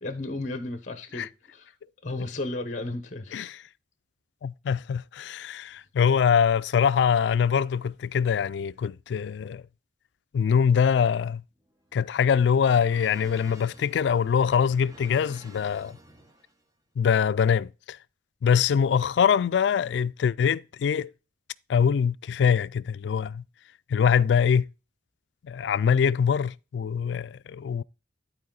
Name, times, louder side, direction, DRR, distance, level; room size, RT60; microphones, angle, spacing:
voice 1, 0.0-1.7 2.0-3.5 5.2-5.4, left 2 dB, 40° left, 1.0 m, -34 dB
voice 2, 4.4-9.6 10.3-11.4 11.9-16.0 17.0-18.0 18.4-21.1 21.7-23.4 23.9-24.7 25.4-27.8, left 7 dB, 70° left, 0.3 m, -23 dB
sound 1, 11.5-16.6, right 1 dB, 20° right, 0.9 m, -51 dB
11.5 x 4.6 x 3.9 m
head